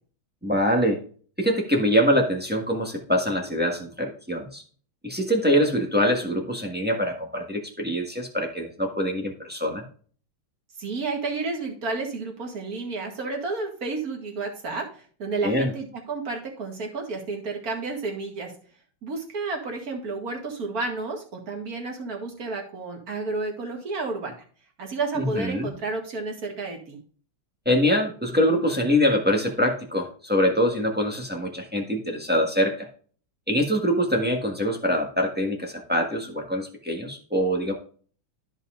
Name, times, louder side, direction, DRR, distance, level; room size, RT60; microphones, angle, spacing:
voice 1, 0.4-1.0 1.4-4.6 5.0-9.8 15.4-15.7 25.1-25.7 27.6-32.9 33.5-37.7, equal, 5° right, 1 dB, 1.2 m, -24 dB
voice 2, 10.8-18.5 19.0-24.3 24.8-27.0, right 3 dB, 45° right, 1 dB, 2.3 m, -31 dB
13.5 x 5.5 x 2.5 m, 0.43 s
omnidirectional pair, 2.3 m